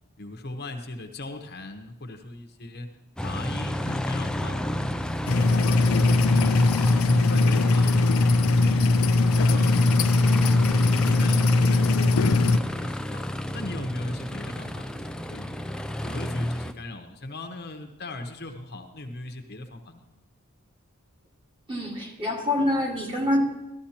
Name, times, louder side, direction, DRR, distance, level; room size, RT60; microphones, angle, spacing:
voice 1, 0.2-2.9 3.2-4.9 5.3-6.9 7.2-10.6 10.9-12.3 12.8-13.2 13.5-15.7 16.0-20.1, left 2 dB, 50° left, 5 dB, 0.9 m, -38 dB
Aircraft, 3.2-16.7, left 1 dB, 5° left, 0.3 m, -32 dB
sound 1, 5.3-12.6, left 3 dB, 80° left, 0.5 m, -20 dB
voice 2, 21.7-23.4, left 1 dB, 25° right, -1 dB, 1.9 m, -25 dB
14.0 x 13.0 x 2.9 m, 0.94 s
head